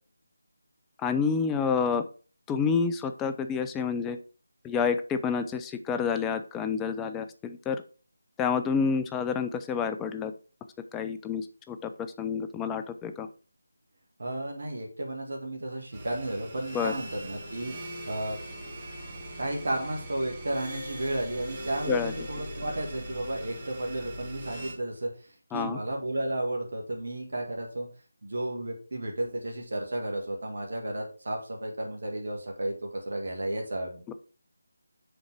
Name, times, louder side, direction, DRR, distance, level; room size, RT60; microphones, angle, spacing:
voice 1, 1.0-2.0 2.5-4.2 4.6-7.8 8.4-10.3 10.9-13.3 16.7-16.9 21.9-22.3 25.5-25.8 34.1-34.2, left 6 dB, 10° left, 9 dB, 0.4 m, -29 dB
voice 2, 14.2-17.7 18.1-18.4 19.4-25.1 25.5-27.9 28.2-34.1, right 1 dB, 50° right, 1 dB, 1.6 m, -33 dB
sound 1, 15.9-24.7, right 1 dB, 20° right, 1.7 m, -41 dB
6.7 x 3.8 x 4.7 m, 0.37 s
figure-of-eight pair, 155°, 0 cm